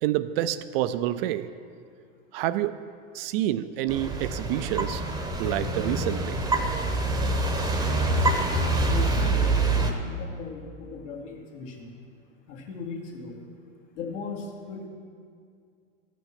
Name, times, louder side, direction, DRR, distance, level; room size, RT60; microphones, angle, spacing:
voice 1, 0.0-1.5 2.3-2.9 3.1-5.0 5.4-6.4, right 13 dB, 55° right, 0.5 m, -28 dB
sound 1, 3.9-9.9, right 2 dB, 10° right, 0.9 m, -25 dB
voice 2, 8.8-9.6 10.0-11.9 12.5-13.4 13.9-14.9, left 4 dB, 75° left, 2.1 m, -37 dB
13.5 x 6.1 x 5.8 m
hypercardioid pair, 110°, 36 cm